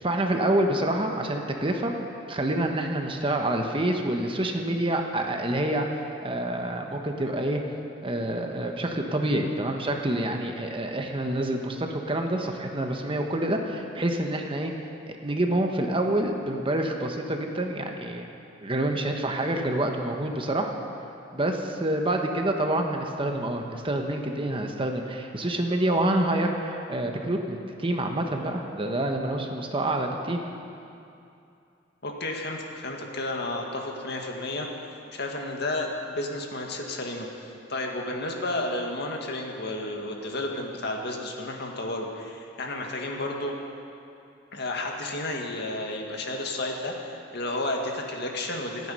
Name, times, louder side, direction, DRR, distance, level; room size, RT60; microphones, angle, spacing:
voice 1, 0.0-1.9 2.3-7.6 8.0-14.7 15.0-18.3 18.6-20.7 21.3-30.4, right 1 dB, 30° right, 3 dB, 1.2 m, -27 dB
voice 2, 32.0-43.6 44.5-48.9, left 2 dB, 60° left, 1 dB, 2.0 m, -32 dB
27.5 x 9.4 x 5.6 m, 2.6 s
head